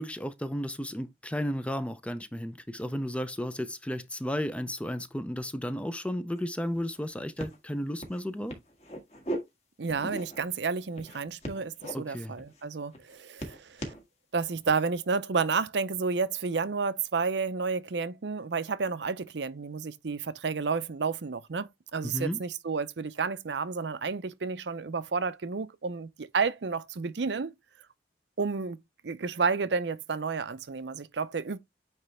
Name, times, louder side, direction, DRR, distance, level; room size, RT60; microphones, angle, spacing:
voice 1, 0.0-8.6 11.9-12.3 22.0-22.4, equal, 5° left, 0.5 m, -33 dB
sound 1, 6.4-6.5 6.7-7.1 7.4-7.6 8.0-8.2 8.5-9.4 9.9-10.5 10.9-11.9 12.4-12.6 12.9-14.0 14.6-14.9, right 1 dB, 35° left, 1.7 m, -39 dB
voice 2, 9.8-13.9 14.3-27.5 28.4-28.8 29.0-31.6, right 5 dB, 75° right, 0.6 m, -31 dB
9.1 x 3.3 x 3.2 m
head